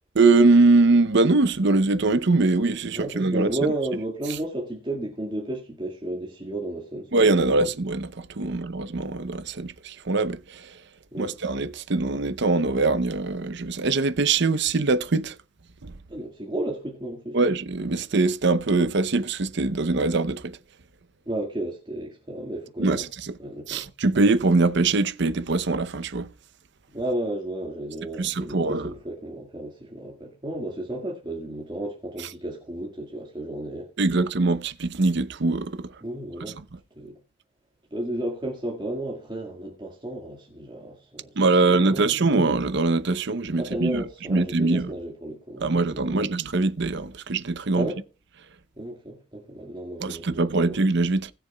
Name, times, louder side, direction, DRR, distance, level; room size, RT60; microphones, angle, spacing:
voice 1, 0.1-3.7 7.1-10.7 11.2-15.4 15.8-15.9 17.3-20.6 22.8-23.3 23.7-26.3 28.2-28.9 34.0-35.9 36.6-36.7 41.4-44.0 44.3-44.9 45.6-47.9 50.0-51.3, right 3 dB, 60° right, 0.7 m, -22 dB
voice 2, 2.9-7.1 8.5-8.6 11.1-11.3 16.1-17.4 21.3-23.0 23.4-23.9 26.9-33.9 36.0-36.6 37.0-37.2 37.9-41.3 41.8-42.4 43.5-46.3 47.7-48.0 48.8-50.8, right 1 dB, 25° right, 2.0 m, -33 dB
20.5 x 6.9 x 2.3 m
head